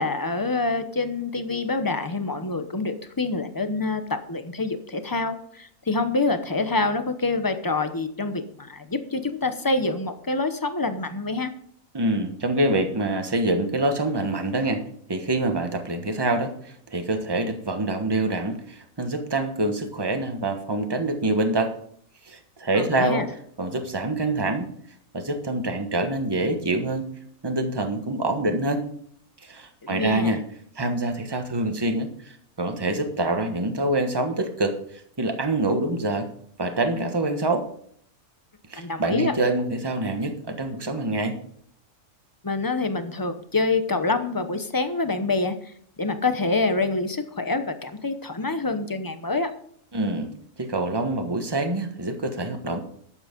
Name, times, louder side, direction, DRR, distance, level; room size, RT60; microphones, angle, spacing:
voice 1, 0.0-4.0 4.3-11.5 22.7-23.2 29.8-30.3 38.8-39.3 42.4-45.5 46.0-49.5, left 3 dB, 20° left, 9 dB, 0.7 m, -26 dB
voice 2, 11.9-14.8 15.1-21.7 22.2-23.3 23.6-24.7 25.1-27.1 27.4-28.8 29.4-30.4 30.7-34.8 35.2-36.3 36.6-37.7 38.7-41.4 49.9-50.3 50.6-52.8, right 2 dB, 20° right, 6 dB, 1.2 m, -25 dB
12.0 x 8.0 x 5.2 m, 0.64 s
omnidirectional pair, 1.5 m